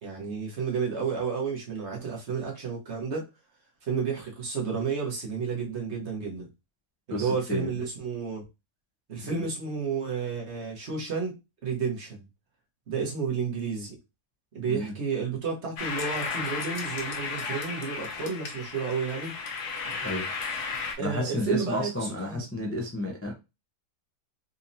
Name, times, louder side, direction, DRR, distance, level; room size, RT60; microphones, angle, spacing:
voice 1, 0.0-3.3 3.8-6.5 7.1-8.4 9.1-11.3 11.6-12.2 12.9-13.9 14.5-19.3 21.0-21.9 22.2-22.4, right 5 dB, 45° right, 1.5 m, -31 dB
voice 2, 7.1-7.7 14.7-14.9 20.0-20.3 21.0-23.3, left 1 dB, 20° left, 0.4 m, -31 dB
sound 1, 15.8-20.9, left 4 dB, 85° left, 1.4 m, -34 dB
4.2 x 2.8 x 2.7 m
omnidirectional pair, 1.6 m